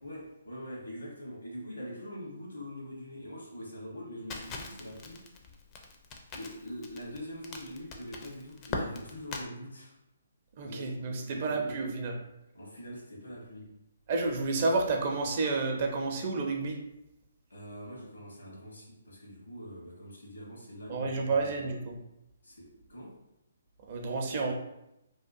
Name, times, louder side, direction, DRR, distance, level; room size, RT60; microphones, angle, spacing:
voice 1, 0.0-5.2 6.3-9.9 10.6-11.8 12.5-13.8 17.5-21.8 22.4-23.2, equal, 85° left, -3 dB, 1.1 m, -44 dB
Crackle, 4.3-9.4, left 3 dB, 25° left, 0.4 m, -41 dB
voice 2, 10.6-12.1 14.1-16.8 20.9-22.0 23.9-24.5, right 3 dB, 45° right, 1 dB, 0.5 m, -30 dB
2.8 x 2.2 x 2.6 m, 0.86 s
figure-of-eight pair, 135°, 0 cm